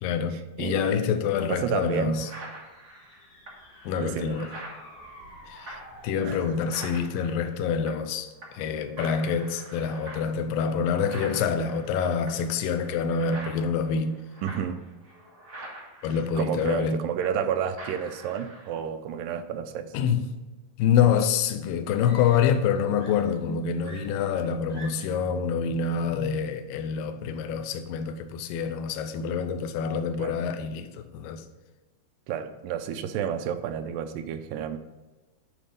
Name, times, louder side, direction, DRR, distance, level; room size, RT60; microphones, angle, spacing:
voice 1, 0.0-2.3 3.8-4.5 5.5-14.2 16.0-17.0 19.9-20.3 20.8-31.4, left 7 dB, 80° left, 2.3 m, -26 dB
voice 2, 0.6-1.1 1.5-2.2 4.0-4.4 6.3-6.4 14.4-14.8 16.4-20.0 30.2-30.4 32.3-34.8, right 8 dB, 80° right, 2.1 m, -30 dB
sound 1, 1.3-1.4 1.8-8.1 8.4-8.7 9.0-17.5 17.8-18.8, right 1 dB, 30° right, 2.0 m, -45 dB
sound 2, 2.2-6.5, equal, 50° left, 2.9 m, -49 dB
Screaming, 21.9-22.7 23.0-25.3 26.2-26.5, right 1 dB, 10° right, 1.4 m, -48 dB
9.9 x 4.5 x 5.3 m
omnidirectional pair, 4.3 m